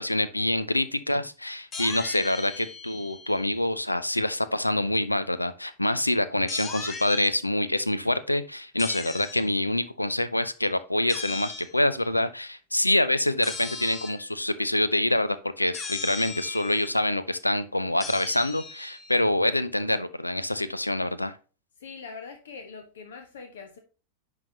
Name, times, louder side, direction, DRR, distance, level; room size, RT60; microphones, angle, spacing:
voice 1, 0.0-21.4, left 1 dB, 85° left, 0.5 m, -26 dB
sound 1, 1.7-3.7 6.5-7.3 8.8-9.5 11.1-11.7 13.4-14.2 15.7-16.9 18.0-19.2, left 5 dB, 25° left, 1.1 m, -38 dB
voice 2, 21.8-23.8, left 5 dB, 60° left, 0.9 m, -42 dB
10.5 x 3.9 x 2.8 m
figure-of-eight pair, 90°, 0 cm